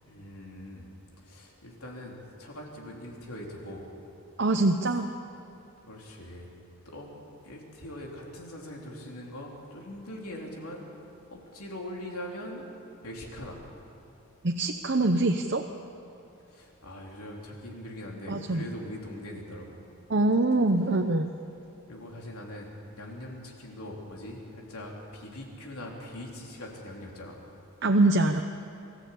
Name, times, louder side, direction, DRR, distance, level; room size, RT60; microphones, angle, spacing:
voice 1, 0.1-0.9 1.3-2.1 2.4-3.8 5.9-6.5 6.9-7.2 7.4-10.9 11.3-12.7 13.0-13.6 16.5-19.8 21.9-22.7 23.0-27.4, left 1 dB, 85° left, -1 dB, 3.8 m, -41 dB
voice 2, 4.4-5.1 14.4-15.6 18.3-18.6 20.1-21.3 27.8-28.4, right 2 dB, 50° right, 4 dB, 0.8 m, -24 dB
24.0 x 14.0 x 8.5 m, 2.9 s
head